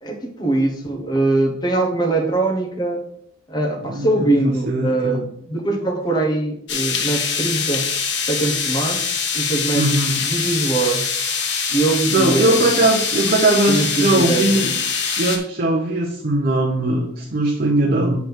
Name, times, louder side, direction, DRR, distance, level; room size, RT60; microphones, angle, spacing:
voice 1, 0.0-3.0 3.5-7.9 8.3-9.0 9.3-9.9 10.2-11.0 11.7-12.8 13.7-14.7, right 2 dB, 20° left, 0 dB, 1.1 m, -22 dB
voice 2, 3.8-4.3 4.7-5.2 9.7-10.2 12.1-14.7 15.2-18.2, right 2 dB, 50° right, -1 dB, 0.8 m, -19 dB
sound 1, 6.7-15.4, left 6 dB, 65° left, 1.1 m, -23 dB
7.6 x 3.5 x 6.2 m, 0.70 s
head